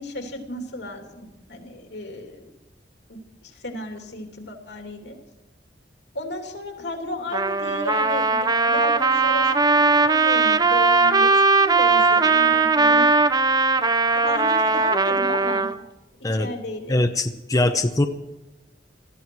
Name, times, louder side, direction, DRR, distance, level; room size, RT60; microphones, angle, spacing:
voice 1, 0.0-2.5 3.1-5.2 6.1-13.1 14.1-15.7 16.3-17.0 17.5-17.8, left 1 dB, 85° left, 3 dB, 2.8 m, -33 dB
Trumpet, 7.3-15.7, right 4 dB, 25° right, 0.6 m, -19 dB
voice 2, 16.9-18.1, left 2 dB, 20° left, 6 dB, 0.8 m, -21 dB
19.0 x 14.0 x 4.7 m, 0.99 s
head